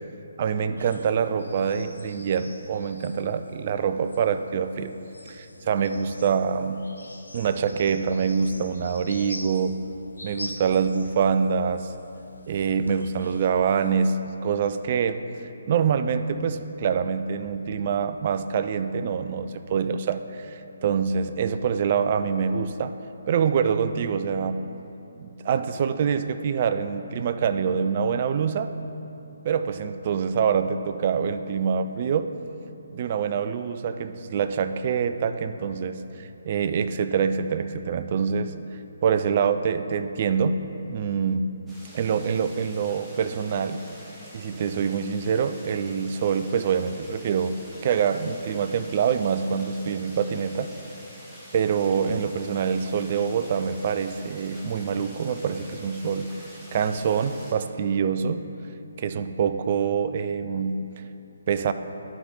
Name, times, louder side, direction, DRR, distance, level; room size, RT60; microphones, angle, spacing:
voice 1, 0.4-4.9 5.3-6.8 7.3-9.8 10.2-11.9 12.5-15.2 15.7-22.9 23.3-24.7 25.2-28.7 29.4-32.3 32.9-38.5 39.0-40.6 40.9-41.5 41.9-43.8 44.3-50.7 51.5-56.3 56.7-58.5 59.0-60.8 61.5-61.7, right 6 dB, 40° right, 10 dB, 0.3 m, -25 dB
sound 1, 0.8-13.9, left 2 dB, 80° left, 1.0 m, -45 dB
sound 2, 41.7-57.5, equal, 5° right, 1.2 m, -46 dB
11.5 x 4.9 x 3.7 m, 2.9 s
figure-of-eight pair, 140°, 0 cm